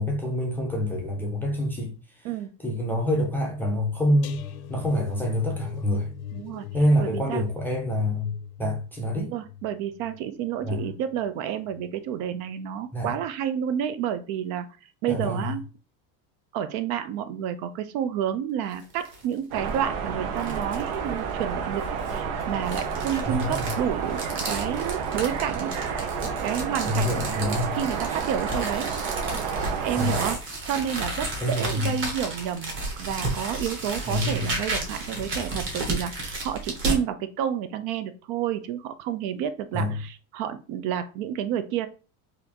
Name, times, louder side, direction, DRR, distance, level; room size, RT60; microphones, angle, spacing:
voice 1, 0.0-1.9 2.6-4.4 4.7-6.1 6.7-9.3 10.6-10.8 12.9-13.1 15.1-15.5 23.3-23.6 26.9-27.8 29.9-30.2 31.4-31.9 34.1-34.5 39.7-39.9, equal, 5° left, 0.4 m, -26 dB
sound 1, 4.2-11.3 11.6-12.0 12.3-12.4, left 9 dB, 65° left, 0.6 m, -41 dB
voice 2, 6.3-6.7 7.0-7.4 9.2-14.7 15.0-15.7 16.5-25.7 26.4-27.4 27.8-28.9 29.8-30.4 30.7-32.7 33.0-41.9, right 9 dB, 65° right, 0.5 m, -30 dB
sound 2, 18.7-19.2 19.7-19.8 20.4-20.9 21.8-37.0, right 2 dB, 30° right, 1.1 m, -33 dB
sound 3, 19.5-30.4, right 6 dB, 85° right, 0.9 m, -30 dB
4.1 x 2.6 x 2.8 m
cardioid pair, 155°, 44 cm